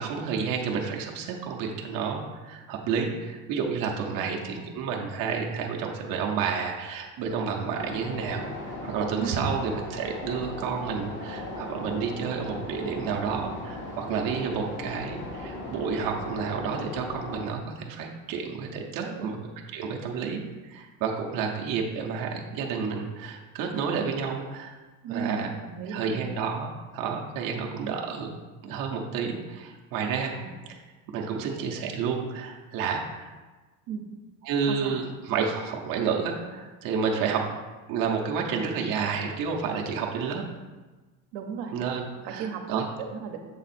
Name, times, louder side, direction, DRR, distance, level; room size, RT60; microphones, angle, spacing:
voice 1, 0.0-19.4 19.7-24.8 25.1-25.5 25.9-28.3 28.6-30.3 31.1-33.3 34.4-37.5 37.9-40.4 41.7-42.9, right 6 dB, 50° right, 1 dB, 0.8 m, -30 dB
voice 2, 4.1-4.7 9.2-9.5 19.0-19.3 25.0-26.3 30.4-30.5 33.9-34.0 34.7-35.0 41.3-41.8 42.3-43.4, right 6 dB, 80° right, 4 dB, 0.9 m, -36 dB
sound 1, 7.8-17.5, left 1 dB, 25° left, 0.9 m, -37 dB
7.2 x 3.6 x 4.2 m, 1.3 s
cardioid pair, 150°, 43 cm